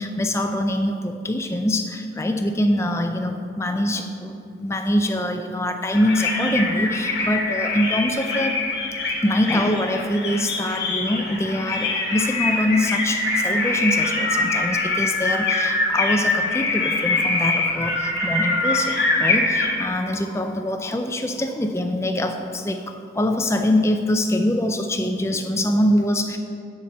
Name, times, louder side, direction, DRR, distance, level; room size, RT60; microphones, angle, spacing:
voice 1, 0.0-8.6 9.2-22.8 23.1-26.4, left 1 dB, 15° left, 6 dB, 0.4 m, -24 dB
sound 1, 5.9-19.9, left 3 dB, 70° left, 1.7 m, -24 dB
10.5 x 4.3 x 6.4 m, 2.5 s
head